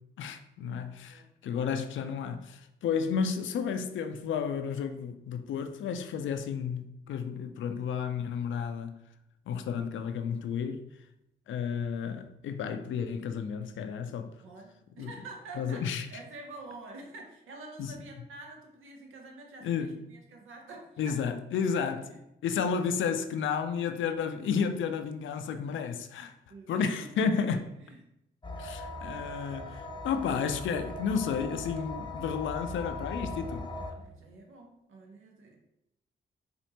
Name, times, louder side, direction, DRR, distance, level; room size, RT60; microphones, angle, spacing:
voice 1, 0.2-9.0 9.5-10.8 11.5-14.3 15.0-15.1 15.6-16.1 17.8-17.9 19.6-19.9 21.0-22.0 22.4-26.3 26.7-27.6 28.6-33.7, left 6 dB, 70° left, 0.4 m, -32 dB
voice 2, 14.4-21.2 21.7-22.2 26.5-28.0 33.7-35.6, right 2 dB, 75° right, 0.9 m, -47 dB
sound 1, 28.4-33.9, left 2 dB, 25° left, 0.7 m, -39 dB
4.4 x 2.5 x 2.8 m
supercardioid pair, 40°, 21 cm